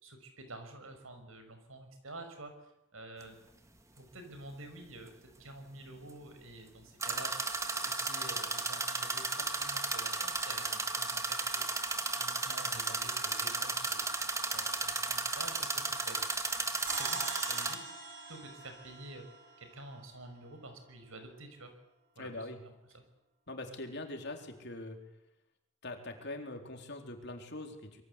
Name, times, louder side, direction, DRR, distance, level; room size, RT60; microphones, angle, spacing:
voice 1, 0.0-3.4 4.0-7.3 7.7-14.2 14.5-16.2 16.9-17.8 18.3-19.2 19.6-21.7 22.2-23.0, right 2 dB, 75° right, 7 dB, 6.0 m, -49 dB
sound 1, 3.2-3.3 7.0-17.7, right 3 dB, 15° right, 1.8 m, -34 dB
sound 2, 16.9-20.2, right 3 dB, 40° right, 7.4 m, -43 dB
voice 2, 22.2-22.6 23.5-25.0 25.8-28.0, left 2 dB, 50° left, 4 dB, 4.0 m, -42 dB
26.0 x 23.0 x 8.4 m, 0.84 s
head